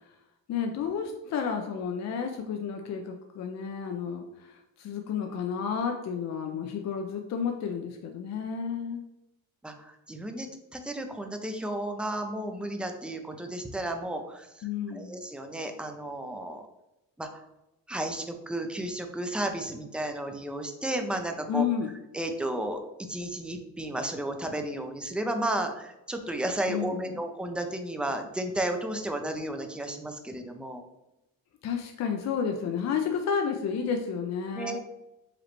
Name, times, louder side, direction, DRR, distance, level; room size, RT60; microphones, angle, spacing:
voice 1, 0.5-9.0 14.6-15.2 21.5-21.9 26.7-27.2 31.6-34.8, left 7 dB, 50° left, 4 dB, 0.5 m, -31 dB
voice 2, 9.6-14.7 14.9-16.7 17.2-17.4 17.9-21.7 22.1-22.8 23.1-30.8 34.5-34.8, right 1 dB, 5° right, 5 dB, 0.5 m, -33 dB
5.0 x 3.1 x 3.0 m, 0.92 s
cardioid pair, 105°, 36 cm